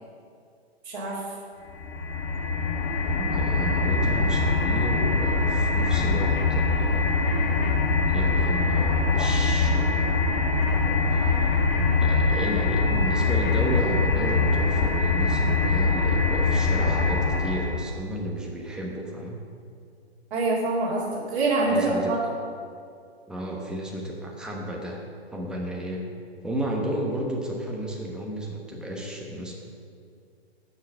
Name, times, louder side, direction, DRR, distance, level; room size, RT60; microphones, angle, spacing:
voice 1, 0.8-1.2 7.5-7.7 20.3-22.2, right 2 dB, 45° right, -8 dB, 2.6 m, -25 dB
sound 1, 1.7-17.9, left 3 dB, 60° left, 1.5 m, -23 dB
voice 2, 3.2-7.0 8.1-10.1 11.1-11.6 12.0-19.4 21.7-22.1 23.3-25.0 25.3-26.1 26.4-29.5, equal, ahead, -2 dB, 1.2 m, -32 dB
10.0 x 6.9 x 6.3 m, 2.3 s
hypercardioid pair, 130°, 32 cm